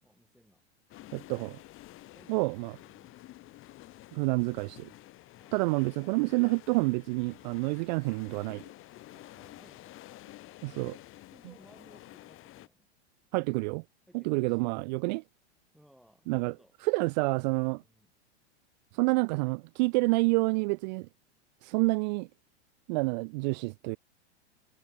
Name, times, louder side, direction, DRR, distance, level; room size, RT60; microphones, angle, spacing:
voice 1, 0.0-0.6 2.0-2.4 2.7-3.2 5.3-5.8 9.1-10.0 10.9-11.0 11.3-12.9 14.1-14.9 15.7-16.7 17.7-18.1, equal, ahead, 2.7 m, -61 dB
sound 1, 0.9-12.7, left 16 dB, 40° left, 3.6 m, -51 dB
voice 2, 1.1-1.6 2.3-2.7 4.1-4.9 5.5-8.6 10.6-11.0 13.3-13.8 14.1-15.2 16.3-16.5 16.8-17.8 18.9-21.1 21.6-22.3 22.9-24.0, right 28 dB, 45° right, 0.4 m, -28 dB
hypercardioid pair, 105°, 33 cm